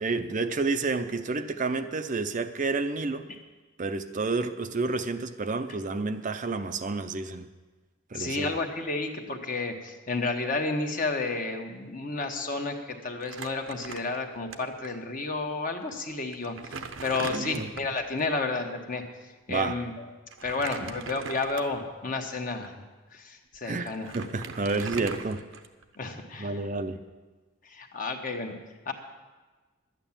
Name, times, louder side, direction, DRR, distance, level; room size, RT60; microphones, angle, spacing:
voice 1, 0.0-3.3 3.8-7.5 8.1-8.5 17.3-17.7 19.5-19.8 23.7-25.4 26.4-27.0, right 3 dB, 40° right, 8 dB, 0.6 m, -30 dB
voice 2, 8.1-19.0 19.5-20.0 20.4-22.8 23.1-24.2 26.0-26.7 27.6-28.5 28.8-28.9, left 3 dB, 45° left, 3 dB, 1.3 m, -31 dB
Crumpling crinkling, 13.2-14.6 14.8-15.0 15.8-15.9 16.3-18.1 20.3-21.9 22.5-22.7 23.5-23.6 23.9-26.0, right 5 dB, 75° right, 0.9 m, -40 dB
12.0 x 9.0 x 7.3 m, 1.3 s
head